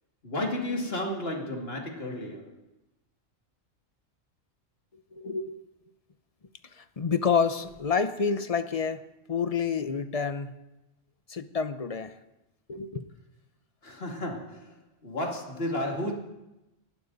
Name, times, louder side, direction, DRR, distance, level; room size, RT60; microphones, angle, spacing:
voice 1, 0.2-2.6 13.8-14.7 15.0-16.1, left 1 dB, 50° left, 1 dB, 2.7 m, -32 dB
voice 2, 5.1-5.6 6.7-9.0 9.3-10.5 11.3-12.1 12.7-13.1, left 6 dB, 35° left, 10 dB, 0.8 m, -28 dB
28.5 x 12.0 x 4.1 m, 0.96 s
omnidirectional pair, 1.3 m